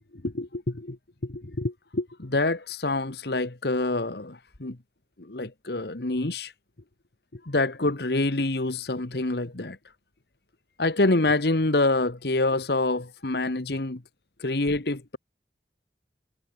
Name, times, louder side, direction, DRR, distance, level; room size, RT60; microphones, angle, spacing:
voice 1, 0.2-1.0 1.2-4.8 5.3-6.5 7.5-9.8 10.8-14.0 14.4-15.2, left 2 dB, 70° left, 1.4 m, -26 dB
head